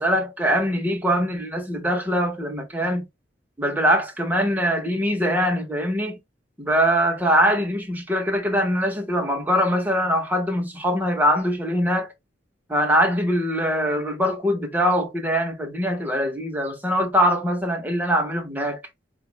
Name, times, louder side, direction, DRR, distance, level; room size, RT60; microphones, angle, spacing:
voice 1, 0.0-3.1 3.6-6.2 6.6-12.1 12.7-18.8, equal, 10° right, 0.7 m, -22 dB
4.8 x 2.2 x 3.1 m
head